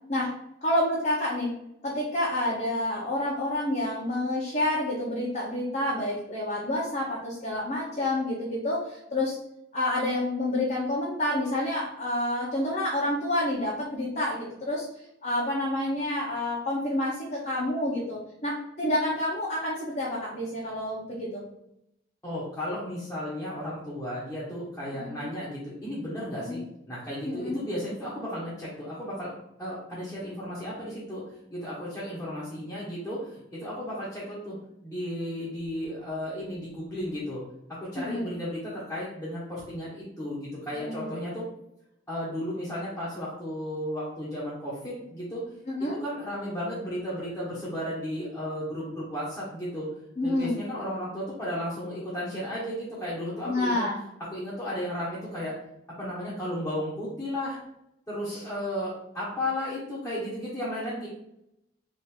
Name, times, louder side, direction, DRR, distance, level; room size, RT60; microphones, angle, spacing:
voice 1, 0.6-1.5 1.8-9.4 9.7-14.9 15.2-21.4 24.9-25.1 26.4-26.6 27.2-27.6 38.0-38.3 40.8-41.1 45.7-46.0 50.2-50.5 53.4-54.0 58.3-58.4, left 1 dB, 40° left, -7 dB, 1.0 m, -28 dB
voice 2, 22.2-26.6 26.9-31.2 31.5-34.6 34.8-37.4 37.7-41.5 42.1-45.4 46.0-49.9 50.2-53.9 54.3-55.5 56.0-57.6 58.1-61.1, left 1 dB, 10° left, -9 dB, 1.2 m, -34 dB
3.7 x 2.8 x 4.4 m, 0.80 s
head